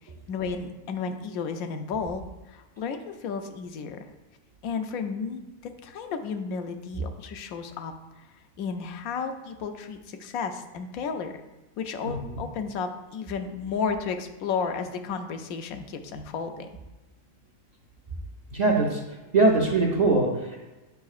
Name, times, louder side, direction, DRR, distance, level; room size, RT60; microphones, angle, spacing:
voice 1, 0.3-4.0 4.6-5.4 5.8-8.3 8.6-11.3 11.8-16.7, left 5 dB, 85° left, 7 dB, 1.1 m, -33 dB
voice 2, 12.0-12.4 18.5-19.0 19.3-20.6, right 3 dB, 40° right, -1 dB, 0.6 m, -22 dB
8.2 x 5.6 x 2.4 m, 1.1 s
omnidirectional pair, 1.4 m